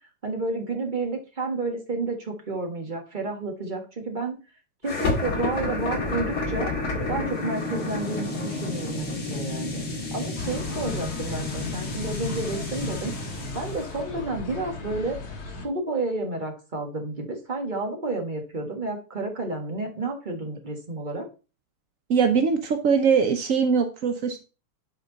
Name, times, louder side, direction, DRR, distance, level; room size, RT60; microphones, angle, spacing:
voice 1, 0.2-4.3 4.8-6.7 7.1-9.8 10.1-13.1 13.5-15.2 15.6-21.3, right 3 dB, 25° right, 2 dB, 1.4 m, -31 dB
sound 1, 4.8-14.0, left 2 dB, 45° left, 2.5 m, -30 dB
sound 2, 10.4-15.6, left 4 dB, 70° left, 2.6 m, -36 dB
voice 2, 22.1-24.4, right 6 dB, 75° right, 6 dB, 0.7 m, -21 dB
9.6 x 4.6 x 3.9 m, 0.33 s
omnidirectional pair, 2.4 m